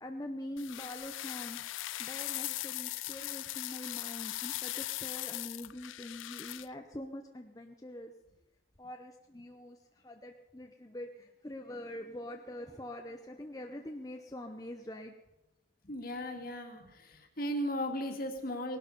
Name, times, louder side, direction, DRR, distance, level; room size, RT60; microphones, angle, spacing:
voice 1, 0.0-1.6 2.0-8.1 8.8-15.2, left 1 dB, 20° left, 3 dB, 0.8 m, -44 dB
sound 1, 0.6-6.7, left 16 dB, 80° left, 0.4 m, -39 dB
voice 2, 15.8-18.8, equal, 50° left, 4 dB, 2.1 m, -36 dB
19.5 x 12.0 x 5.4 m, 0.94 s
head